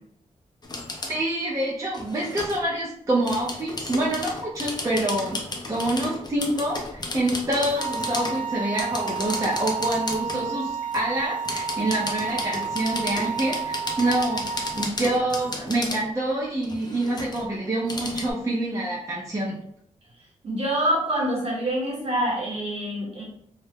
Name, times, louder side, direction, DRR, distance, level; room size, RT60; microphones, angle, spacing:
sound 1, 0.6-1.2 1.9-2.6 3.2-8.4 8.7-10.5 10.9-16.0 16.6-18.3, left 2 dB, 30° left, 0.5 m, -34 dB
voice 1, 1.1-5.4 5.7-19.6, right 1 dB, 25° right, -5 dB, 0.5 m, -26 dB
sound 2, 7.7-14.9, right 6 dB, 85° right, 0.5 m, -31 dB
voice 2, 20.4-23.2, right 1 dB, 50° right, -3 dB, 1.0 m, -26 dB
2.3 x 2.0 x 3.2 m, 0.69 s
wide cardioid pair, 110°, 13 cm